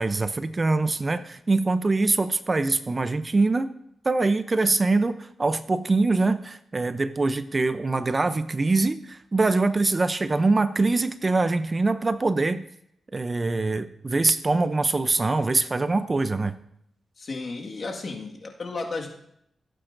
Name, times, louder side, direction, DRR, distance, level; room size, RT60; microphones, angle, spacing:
voice 1, 0.0-3.7 4.0-12.6 13.1-16.5, right 3 dB, 35° right, 12 dB, 0.5 m, -23 dB
voice 2, 17.2-19.1, left 3 dB, 50° left, 1 dB, 1.7 m, -33 dB
16.5 x 8.6 x 2.6 m, 0.73 s
cardioid pair, 75°, 0 cm